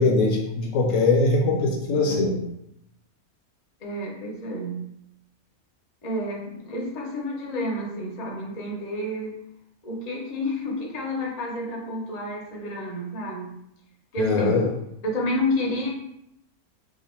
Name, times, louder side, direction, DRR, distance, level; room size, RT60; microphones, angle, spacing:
voice 1, 0.0-2.4 14.2-14.7, left 3 dB, 70° left, 0 dB, 1.0 m, -21 dB
voice 2, 3.8-4.9 6.0-9.4 9.8-13.5 14.1-14.6 15.0-15.9, left 1 dB, 40° left, -1 dB, 0.6 m, -30 dB
2.9 x 2.5 x 4.2 m, 0.79 s
omnidirectional pair, 1.5 m